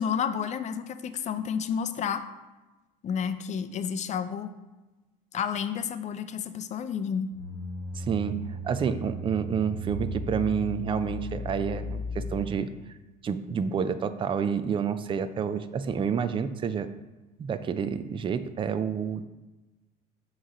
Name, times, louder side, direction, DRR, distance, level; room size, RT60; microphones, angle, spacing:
voice 1, 0.0-2.2 3.0-4.5 5.3-7.3, left 7 dB, 40° left, 10 dB, 0.5 m, -30 dB
sound 1, 7.3-12.8, left 1 dB, 15° left, 1.3 m, -36 dB
voice 2, 7.9-12.7 13.2-16.9 17.4-19.3, right 7 dB, 25° right, 11 dB, 0.4 m, -29 dB
6.3 x 3.1 x 5.1 m, 1.1 s
supercardioid pair, 100°, 19 cm